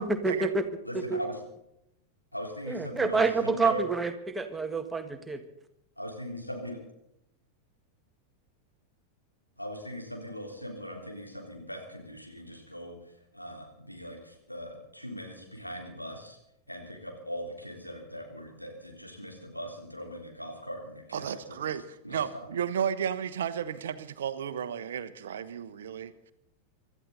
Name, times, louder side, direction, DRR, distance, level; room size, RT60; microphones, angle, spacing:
voice 1, 0.0-0.6 0.9-1.2 2.7-5.4, right 4 dB, 10° right, 6 dB, 1.8 m, -28 dB
voice 2, 0.8-1.4 2.3-3.8 6.0-6.8 9.6-13.0 13.3-16.4 16.7-21.2 22.0-22.2, equal, 90° left, 1 dB, 3.7 m, -40 dB
voice 3, 21.1-26.3, right 8 dB, 60° right, 12 dB, 1.1 m, -33 dB
26.0 x 13.5 x 4.1 m, 0.80 s
figure-of-eight pair, 90°, 0 cm